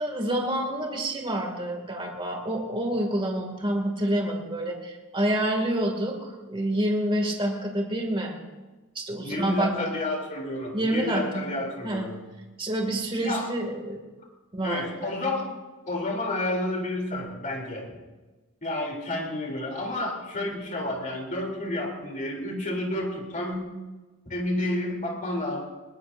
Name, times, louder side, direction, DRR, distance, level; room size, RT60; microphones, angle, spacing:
voice 1, 0.0-8.4 8.9-9.7 10.7-11.4 11.8-12.1 12.6-14.0 14.5-15.1, right 1 dB, 25° right, 1 dB, 2.3 m, -28 dB
voice 2, 9.2-12.1 13.2-13.5 14.6-15.5 15.8-17.9 18.6-23.7 24.2-25.6, left 1 dB, 35° left, 0 dB, 3.2 m, -30 dB
21.0 x 19.5 x 2.7 m, 1.2 s
head